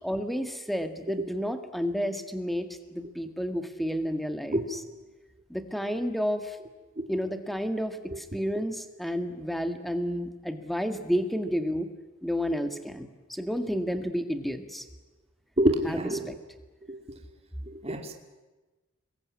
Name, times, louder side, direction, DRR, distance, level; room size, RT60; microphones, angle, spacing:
voice 1, 0.0-4.8 5.5-6.6 7.1-11.9 12.2-14.9 15.8-16.0 16.3-16.4, equal, ahead, 8 dB, 1.9 m, -31 dB
voice 2, 15.6-16.2 16.9-17.2 17.7-18.1, right 1 dB, 30° right, 4 dB, 2.5 m, -27 dB
27.5 x 22.0 x 9.7 m, 1.2 s
head